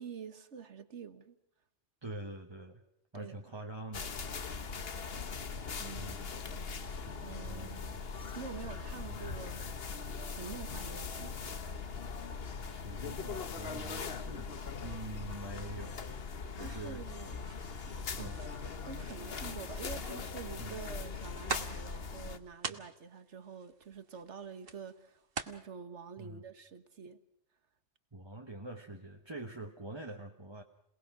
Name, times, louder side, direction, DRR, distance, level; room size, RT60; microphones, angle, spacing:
voice 1, 0.0-1.4 3.1-3.5 5.8-6.6 7.2-8.0 8.4-9.7 10.2-11.4 16.6-17.4 18.2-18.3 18.6-27.2, right 6 dB, 80° right, 11 dB, 1.7 m, -47 dB
voice 2, 2.0-2.8 3.1-4.1 5.6-5.7 5.9-6.3 7.0-8.0 8.9-9.2 12.6-14.5 14.8-16.2 16.5-17.0 18.2-18.4 20.6-20.8 22.7-22.8 26.2-26.4 28.1-30.6, right 2 dB, 25° right, 1 dB, 1.3 m, -45 dB
sound 1, 3.9-22.4, left 5 dB, 60° left, 1.3 m, -41 dB
Wet Slaps, 17.3-25.6, right 5 dB, 55° right, 1.5 m, -45 dB
27.5 x 19.0 x 6.1 m, 0.78 s
omnidirectional pair, 1.2 m